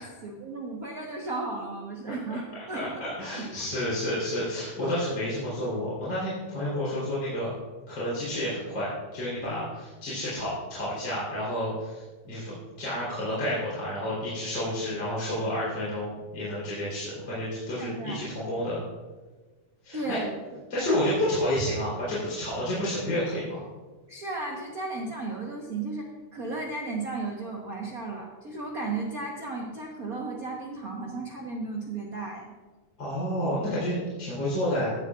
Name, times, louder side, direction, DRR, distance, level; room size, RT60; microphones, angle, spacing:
voice 1, 0.0-4.0 9.4-9.5 17.8-18.2 19.9-20.4 24.1-32.5, right 3 dB, 70° right, -1 dB, 0.8 m, -35 dB
voice 2, 2.1-2.4 2.7-7.5 7.9-18.8 19.8-20.2 20.7-23.7 33.0-34.9, left 1 dB, 35° left, -9 dB, 4.2 m, -30 dB
15.5 x 11.0 x 2.4 m, 1.3 s
omnidirectional pair, 3.5 m